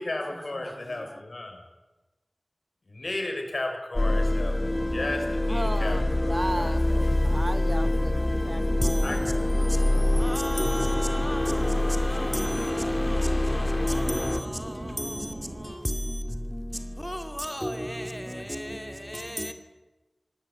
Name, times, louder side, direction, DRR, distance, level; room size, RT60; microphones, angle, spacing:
voice 1, 0.0-1.6 2.9-4.6 4.9-7.3 9.0-10.1, left 2 dB, 65° left, 6.5 m, -35 dB
voice 2, 0.6-1.2 5.5-9.2, right 1 dB, 20° right, 1.0 m, -36 dB
sound 1, 4.0-14.4, left 1 dB, 35° left, 2.0 m, -25 dB
sound 2, 4.1-15.7, right 2 dB, 50° right, 2.2 m, -40 dB
sound 3, 5.9-15.1, left 2 dB, 80° left, 4.8 m, -42 dB
voice 3, 8.8-19.5, equal, 5° left, 2.4 m, -34 dB
26.0 x 19.5 x 9.0 m
wide cardioid pair, 65°, 0 cm